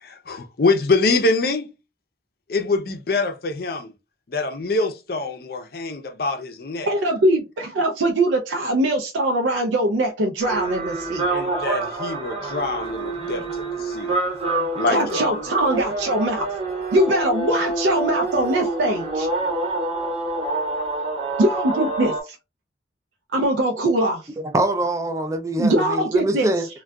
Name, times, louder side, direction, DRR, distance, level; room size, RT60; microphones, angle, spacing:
voice 1, 0.0-1.7 2.5-3.9 4.3-6.9 11.3-13.4 13.8-14.1 14.7-15.2, left 3 dB, 55° left, 0.5 m, -24 dB
voice 2, 6.9-11.3 14.9-16.5 16.9-19.3 21.4-22.4 23.3-24.3 25.6-26.5, right 1 dB, 85° right, 0.4 m, -22 dB
sound 1, 10.4-22.2, right 2 dB, 35° right, 0.7 m, -27 dB
voice 3, 24.4-26.7, right 1 dB, 15° right, 0.3 m, -24 dB
3.5 x 2.2 x 2.2 m
head